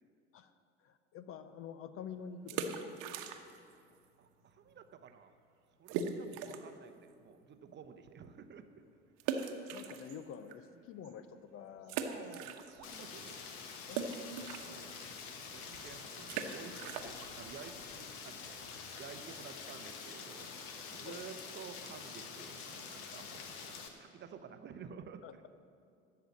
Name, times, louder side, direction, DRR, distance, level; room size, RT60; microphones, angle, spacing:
voice 1, 0.8-2.9 9.7-12.4 13.2-13.3 13.9-14.1 15.8-15.9 21.0-21.3 25.2-25.5, left 7 dB, 35° left, 12 dB, 0.6 m, -48 dB
sound 1, 2.4-3.7 4.0-4.1 4.7-4.8 5.1-5.2 5.9-6.8 7.3-7.4 9.2-10.5 11.0-11.1 11.8-13.0 13.3-18.8, right 6 dB, 50° right, 1.1 m, -41 dB
voice 2, 4.2-5.3 5.8-8.7 12.0-12.6 12.8-13.5 14.6-15.0 15.5-18.6 19.0-20.5 20.9-25.5, right 7 dB, 30° right, 9 dB, 0.8 m, -52 dB
Rain, 12.8-23.9, left 5 dB, 55° left, 1.4 m, -47 dB
13.0 x 6.8 x 7.5 m, 2.4 s
figure-of-eight pair, 65°, 36 cm